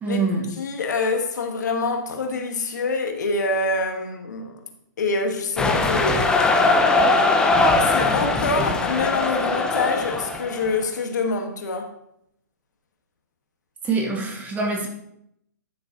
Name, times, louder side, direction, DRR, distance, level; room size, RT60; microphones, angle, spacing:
voice 1, 0.0-0.5 13.8-14.9, right 3 dB, 15° right, 1.5 m, -24 dB
voice 2, 0.6-4.6 5.0-6.5 7.8-11.9, left 3 dB, 65° left, 1.5 m, -25 dB
sound 1, 5.6-10.7, left 3 dB, 5° left, 0.7 m, -20 dB
12.5 x 6.7 x 2.9 m
figure-of-eight pair, 125°, 10 cm